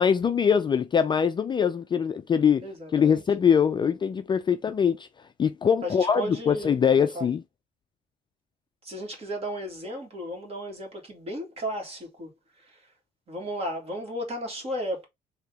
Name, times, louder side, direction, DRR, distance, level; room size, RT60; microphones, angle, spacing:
voice 1, 0.0-2.7 2.9-5.1 5.4-7.4, left 7 dB, 25° left, 0.4 m, -23 dB
voice 2, 2.6-3.2 5.8-7.3 8.8-12.3 12.6-12.9 13.3-15.1, equal, 35° right, 2.0 m, -35 dB
4.0 x 2.8 x 3.4 m
cardioid pair, 110°, 17 cm